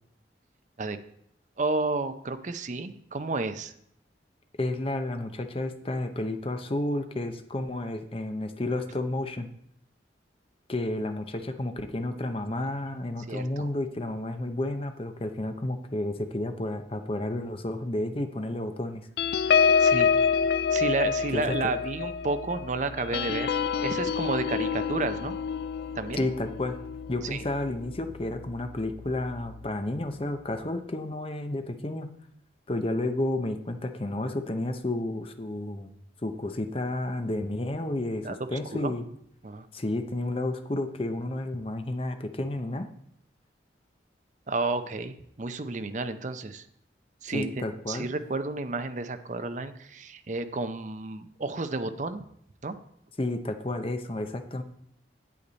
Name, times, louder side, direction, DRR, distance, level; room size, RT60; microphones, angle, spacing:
voice 1, 1.6-3.7 13.3-13.7 19.6-20.1 20.7-23.5 23.8-25.4 26.0-26.2 27.3-27.4 38.2-38.9 39.4-39.7 44.5-46.6 47.2-52.2 52.6-52.7, right 3 dB, 40° right, 10 dB, 0.6 m, -31 dB
voice 2, 4.6-9.5 10.7-19.1 21.3-21.7 26.1-26.8 27.1-32.1 32.7-35.9 36.2-39.0 39.7-42.9 47.3-48.1 53.2-54.6, left 1 dB, 30° left, 7 dB, 0.7 m, -31 dB
sound 1, 19.2-28.1 28.5-28.7 29.0-29.3, left 6 dB, 60° left, 0.3 m, -27 dB
8.5 x 8.4 x 4.0 m, 0.71 s
head